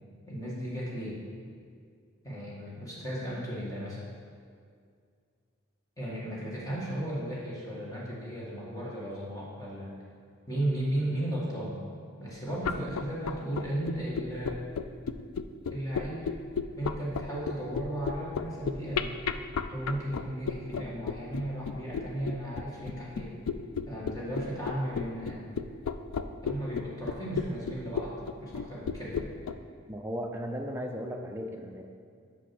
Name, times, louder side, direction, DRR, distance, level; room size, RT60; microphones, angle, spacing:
voice 1, 0.3-1.2 2.2-4.0 6.0-9.9 10.5-11.8 12.2-14.6 15.7-16.3 16.7-19.2 19.7-23.3 23.8-25.4 26.4-29.3, right 1 dB, 15° left, -6 dB, 1.8 m, -35 dB
sound 1, 12.5-29.5, left 6 dB, 90° left, 0.4 m, -33 dB
voice 2, 29.9-31.9, equal, 10° right, 2 dB, 0.5 m, -36 dB
6.4 x 5.5 x 6.0 m, 2.2 s
head